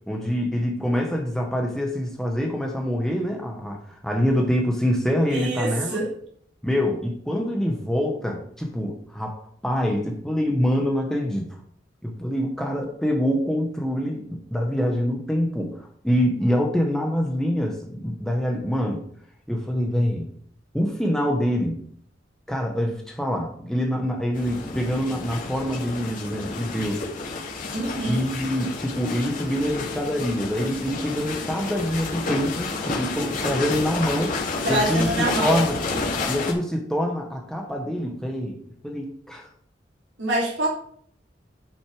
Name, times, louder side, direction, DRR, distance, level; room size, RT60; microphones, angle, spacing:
voice 1, 0.1-6.0 6.6-11.5 12.0-19.0 19.5-20.3 20.7-21.8 22.5-27.0 28.1-34.4 34.7-35.8 36.3-39.5, equal, 5° left, 1 dB, 1.2 m, -25 dB
voice 2, 5.3-6.1 27.7-28.2 34.6-35.6 40.2-40.7, right 1 dB, 85° right, -3 dB, 3.1 m, -25 dB
sound 1, 24.3-36.5, left 3 dB, 45° left, 2.4 m, -30 dB
10.5 x 6.3 x 4.9 m, 0.62 s
head